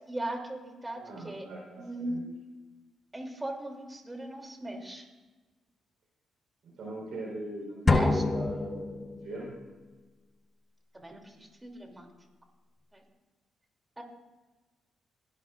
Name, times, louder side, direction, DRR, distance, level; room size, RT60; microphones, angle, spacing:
voice 1, 0.1-1.4 1.8-2.2 3.1-5.1 7.8-8.2 10.9-12.1 12.9-13.0 14.0-14.1, right 1 dB, 20° right, 2 dB, 3.1 m, -38 dB
voice 2, 1.0-2.2 6.8-9.5, right 2 dB, 70° right, -3 dB, 4.3 m, -41 dB
sound 1, 7.9-9.6, left 3 dB, 35° left, 1.0 m, -27 dB
20.0 x 12.0 x 2.6 m, 1.2 s
hypercardioid pair, 50°, 0 cm